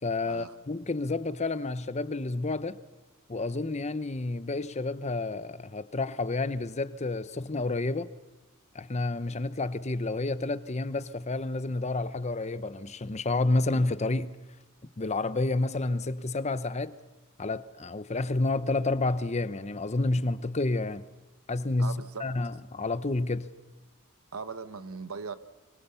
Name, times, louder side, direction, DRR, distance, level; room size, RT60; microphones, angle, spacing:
voice 1, 0.0-2.8 3.3-8.1 8.7-14.3 15.0-16.9 17.4-21.1 21.5-23.5, left 2 dB, 30° left, 0.8 m, -30 dB
voice 2, 21.8-22.3 24.3-25.3, right 5 dB, 85° right, 1.2 m, -39 dB
24.0 x 23.5 x 7.0 m
head